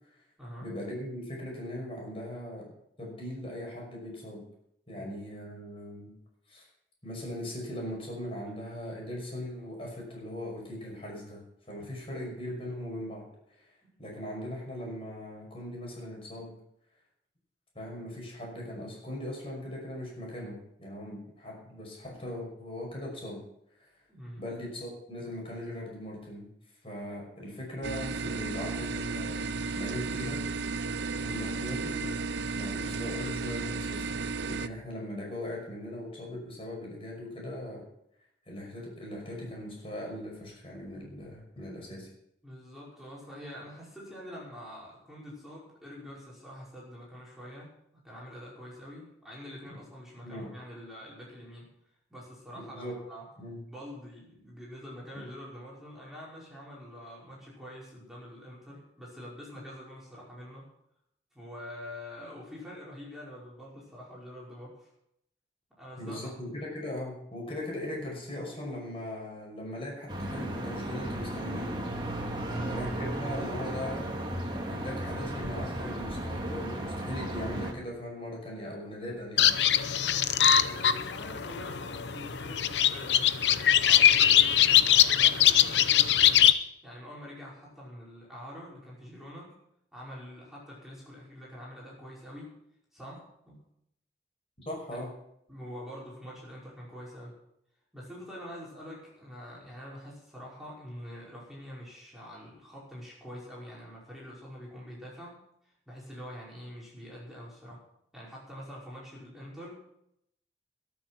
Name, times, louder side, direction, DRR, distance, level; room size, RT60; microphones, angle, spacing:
voice 1, 0.6-4.4 4.9-6.1 6.5-6.6 7.0-11.4 11.7-13.3 13.5-13.7 14.0-16.5 17.7-23.4 23.8-23.9 24.4-26.5 26.8-30.4 31.2-32.1 32.5-34.2 34.4-37.8 38.5-42.1 50.2-50.5 52.6-52.9 53.4-53.6 66.0-71.8 72.5-74.1 74.7-79.5 94.7-95.1, left 1 dB, 30° left, -1 dB, 5.7 m, -39 dB
voice 2, 24.1-24.4 42.4-51.7 52.1-53.3 53.7-60.7 61.3-64.9 65.8-66.3 72.3-72.7 80.4-86.4 86.8-89.5 89.9-92.5 92.9-93.6 94.9-95.0 95.5-97.3 97.9-107.8 108.1-109.8, equal, ahead, -7 dB, 5.3 m, -45 dB
sound 1, 27.8-34.7, right 4 dB, 70° right, 0.6 m, -33 dB
sound 2, 70.1-77.7, right 1 dB, 25° right, 2.1 m, -35 dB
sound 3, 79.4-86.5, left 10 dB, 75° left, 0.8 m, -22 dB
22.0 x 7.3 x 5.9 m, 0.77 s
head